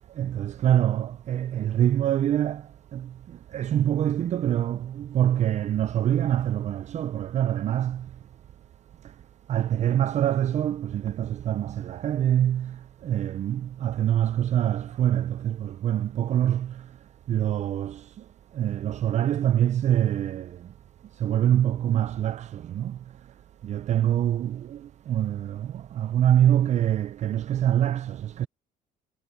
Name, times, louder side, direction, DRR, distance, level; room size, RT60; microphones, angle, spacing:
voice 1, 0.2-2.6 2.9-3.1 3.5-8.0 9.5-12.7 13.0-16.7 17.3-18.0 18.6-20.5 21.2-23.0 23.6-24.8 25.1-28.5, right 11 dB, 45° right, 0.4 m, -25 dB
sound 1, 3.8-6.9, right 3 dB, 20° right, 7.0 m, -62 dB
cardioid pair, 110°, 17 cm